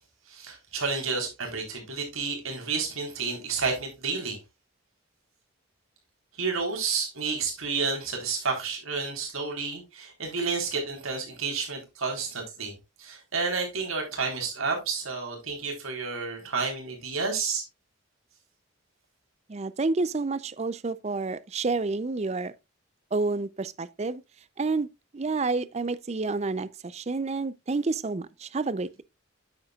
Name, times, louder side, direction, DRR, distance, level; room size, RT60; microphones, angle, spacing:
voice 1, 0.3-4.4 6.4-12.7 13.0-17.6, right 4 dB, 85° right, 3.8 m, -30 dB
voice 2, 19.5-22.5 23.1-24.2 24.6-24.9 25.1-29.0, right 3 dB, 30° right, 0.4 m, -29 dB
9.6 x 7.9 x 2.3 m
head